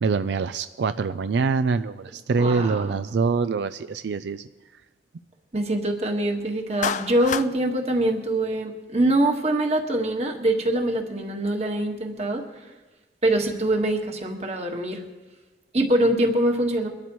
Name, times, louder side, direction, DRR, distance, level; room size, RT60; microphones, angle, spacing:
voice 1, 0.0-4.5, right 4 dB, 80° right, 12 dB, 0.4 m, -24 dB
voice 2, 2.4-3.0 5.5-12.5 13.2-15.0 15.7-16.9, right 1 dB, 35° right, 3 dB, 1.5 m, -24 dB
Clapping, 6.8-7.5, left 7 dB, 45° left, 0.3 m, -28 dB
23.0 x 12.5 x 3.1 m, 1.2 s
head